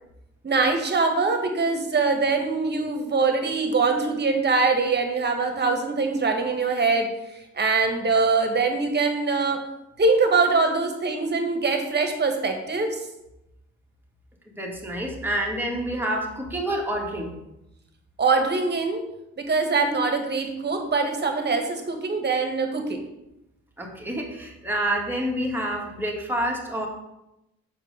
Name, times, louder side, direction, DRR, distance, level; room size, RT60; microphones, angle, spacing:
voice 1, 0.4-9.6 10.0-13.0 18.2-19.0 19.4-23.0, right 4 dB, 35° right, 4 dB, 1.7 m, -23 dB
voice 2, 14.5-17.3 23.8-26.9, right 1 dB, 5° right, -1 dB, 2.1 m, -28 dB
7.1 x 4.7 x 6.5 m, 0.88 s
cardioid pair, 90°, 30 cm